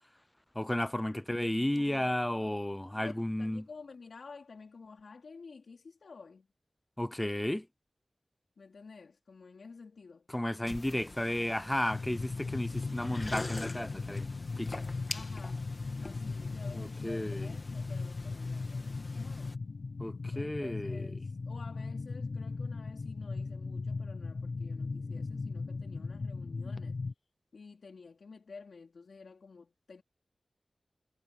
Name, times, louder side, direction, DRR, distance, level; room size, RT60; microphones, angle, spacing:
voice 1, 0.5-3.6 7.0-7.7 10.3-14.3 14.6-14.9 16.7-17.5 20.0-21.1, left 1 dB, 10° left, 0.6 m, -33 dB
voice 2, 1.7-2.2 2.4-2.5 2.9-6.5 8.6-10.3 15.1-15.7 16.0-19.6 20.3-27.0 27.5-30.0, left 4 dB, 85° left, 3.6 m, -51 dB
sound 1, 10.7-19.5, left 2 dB, 35° left, 2.0 m, -45 dB
sound 2, 11.9-27.1, left 3 dB, 65° left, 0.7 m, -38 dB
wide cardioid pair, 90°, 0 cm